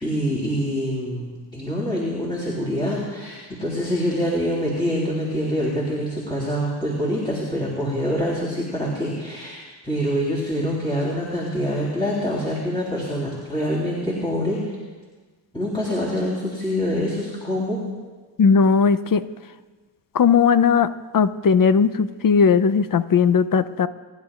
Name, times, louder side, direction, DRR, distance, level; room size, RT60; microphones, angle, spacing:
voice 1, 0.0-14.7 15.5-17.8, equal, 10° left, -6 dB, 3.3 m, -25 dB
voice 2, 18.4-19.2 20.1-20.9 21.1-23.9, left 6 dB, 45° left, 14 dB, 0.6 m, -17 dB
25.0 x 11.5 x 2.4 m, 1.4 s
cardioid pair, 65°, 45 cm